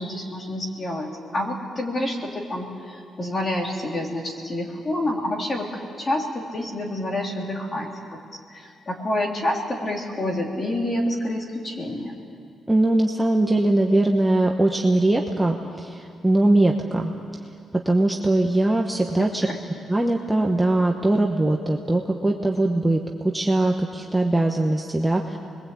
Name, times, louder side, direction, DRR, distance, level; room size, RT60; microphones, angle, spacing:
voice 1, 0.0-5.7 6.0-8.2 8.5-12.2 19.1-19.6, left 1 dB, 25° left, 1 dB, 3.3 m, -28 dB
voice 2, 12.7-17.1 17.8-19.5 19.9-25.4, right 2 dB, 5° right, 1 dB, 1.1 m, -21 dB
30.0 x 21.5 x 8.5 m, 2.4 s
cardioid pair, 170°, 0 cm